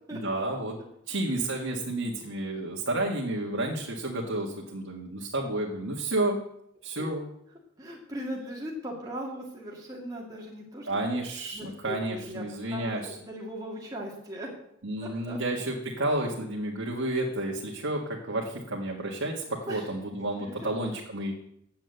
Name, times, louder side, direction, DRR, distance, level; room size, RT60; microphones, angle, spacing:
voice 1, 0.1-0.8 1.1-6.4 6.8-7.3 10.9-13.2 14.8-21.4, right 1 dB, 80° right, -2 dB, 1.9 m, -31 dB
voice 2, 7.8-10.9 11.5-14.5 15.0-15.4 16.0-16.1 19.7-19.9 20.2-20.7, equal, 20° right, -3 dB, 2.0 m, -39 dB
9.0 x 7.5 x 8.0 m, 0.75 s
head